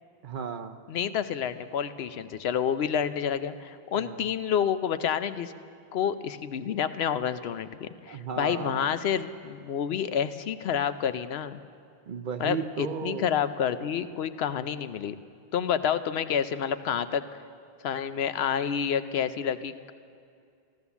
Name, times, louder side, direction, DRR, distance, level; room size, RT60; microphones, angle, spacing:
voice 1, 0.2-0.8 3.9-4.2 8.1-8.9 12.1-13.3, right 6 dB, 55° right, 8 dB, 0.8 m, -34 dB
voice 2, 0.9-5.5 5.9-11.6 12.4-15.1 15.5-17.2 17.8-19.9, left 8 dB, 80° left, 12 dB, 0.9 m, -29 dB
14.5 x 12.5 x 7.0 m, 2.4 s
omnidirectional pair, 1.0 m